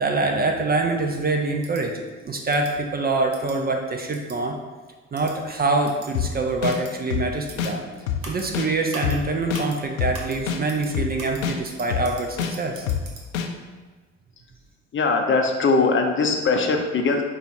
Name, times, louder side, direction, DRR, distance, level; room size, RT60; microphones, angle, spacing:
voice 1, 0.0-1.9 2.2-4.6 5.1-7.8 8.3-12.9, right 3 dB, 25° right, 3 dB, 0.5 m, -25 dB
sound 1, 1.6-1.8 2.5-2.7 3.3-3.6 4.1-4.4 5.1-5.3 5.8-6.1 6.7-6.9 7.5-7.7 8.2-8.5 8.9-9.2 9.5-9.8 10.1-10.4 10.7-10.9 11.2-13.2, right 3 dB, 85° right, 0.9 m, -41 dB
sound 2, 6.1-6.3 6.6-6.8 7.1-7.2 7.6-7.7 8.1-8.2 8.5-8.7 9.0-9.2 9.5-9.6 10.0-10.1 10.5-10.6 10.9-11.1 11.4-11.6 11.9-12.0 12.4-12.5 12.9-13.0 13.3-13.5, left 9 dB, 80° left, 0.5 m, -25 dB
voice 2, 14.9-17.2, left 4 dB, 30° left, 3 dB, 0.6 m, -21 dB
5.1 x 2.3 x 4.5 m, 1.3 s
hypercardioid pair, 55°, 40 cm